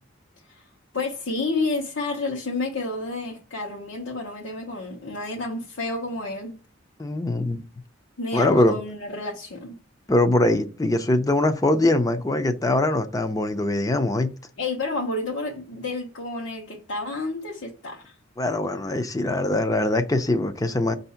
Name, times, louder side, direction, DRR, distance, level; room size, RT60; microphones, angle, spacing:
voice 1, 0.9-6.6 8.2-9.8 14.6-18.1, left 2 dB, 80° left, 1.1 m, -30 dB
voice 2, 7.0-7.6 8.3-8.8 10.1-14.3 18.4-20.9, left 1 dB, 20° left, 0.5 m, -22 dB
6.4 x 2.7 x 5.6 m
head